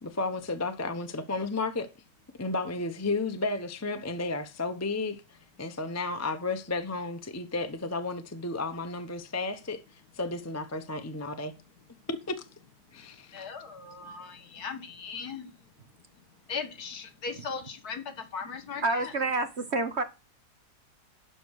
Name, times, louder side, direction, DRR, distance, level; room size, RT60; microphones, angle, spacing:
voice 1, 0.0-1.9 2.4-5.2 5.6-9.8 10.1-11.5 12.1-12.4 12.9-13.4, left 3 dB, 15° left, 0.7 m, -32 dB
voice 2, 13.3-15.5 16.5-19.1, left 5 dB, 65° left, 2.0 m, -38 dB
voice 3, 18.8-20.0, right 2 dB, 45° right, 1.2 m, -28 dB
12.0 x 5.1 x 6.4 m
omnidirectional pair, 1.8 m